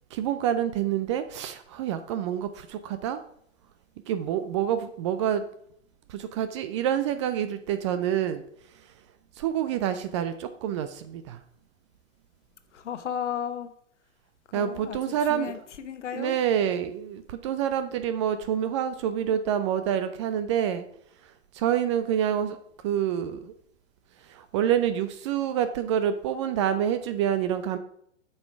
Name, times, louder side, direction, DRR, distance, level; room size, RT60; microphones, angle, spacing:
voice 1, 0.1-3.2 4.1-5.4 6.1-8.4 9.4-11.4 14.5-15.5 16.1-20.8 21.5-22.6 22.8-23.5 24.3-27.8, right 9 dB, 25° right, 0.4 m, -27 dB
voice 2, 12.7-13.7 14.5-16.4, left 8 dB, 65° left, 1.1 m, -34 dB
7.9 x 5.4 x 5.8 m
figure-of-eight pair, 105°, 38 cm